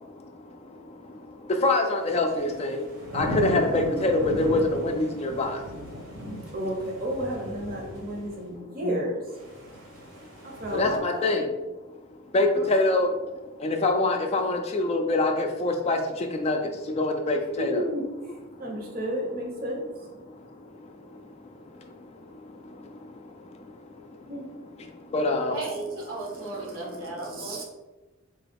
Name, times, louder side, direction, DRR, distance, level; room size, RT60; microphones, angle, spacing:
voice 1, 0.0-5.7 7.8-9.0 10.2-10.3 10.7-11.8 12.1-17.8 18.5-19.0 19.9-25.5 27.3-27.4, left 2 dB, 30° left, 4 dB, 0.3 m, -27 dB
sound 1, 2.1-8.3 9.4-11.0, equal, 70° right, 1.1 m, -35 dB
voice 2, 6.5-9.2 10.4-11.2 12.5-12.7 17.9-18.0 18.6-19.8 24.3-24.4 27.4-27.6, equal, 45° right, -1 dB, 0.7 m, -32 dB
voice 3, 25.5-27.6, right 2 dB, 90° right, -3 dB, 1.3 m, -35 dB
3.9 x 2.3 x 3.3 m, 1.1 s
head